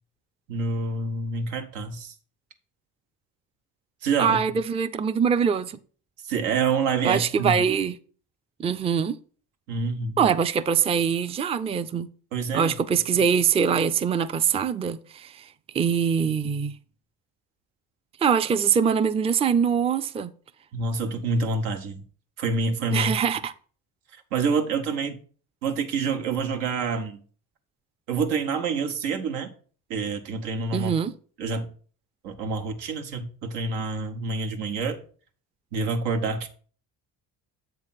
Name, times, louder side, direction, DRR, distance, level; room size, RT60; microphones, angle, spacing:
voice 1, 0.5-2.1 4.0-4.4 6.2-7.6 9.7-10.3 12.3-12.7 13.1-13.2 20.7-22.0 22.4-23.1 24.3-25.2 25.6-27.2 28.1-29.5 29.9-30.9 31.4-31.7 32.2-35.0 35.7-36.5, right 4 dB, 90° right, 1.1 m, -27 dB
voice 2, 4.2-5.8 7.0-8.0 8.6-9.2 10.2-12.1 12.5-15.4 15.7-16.8 18.2-20.3 22.9-23.5 30.7-31.1, right 7 dB, 15° right, 0.4 m, -23 dB
7.6 x 3.3 x 5.7 m
supercardioid pair, 80°, 40 cm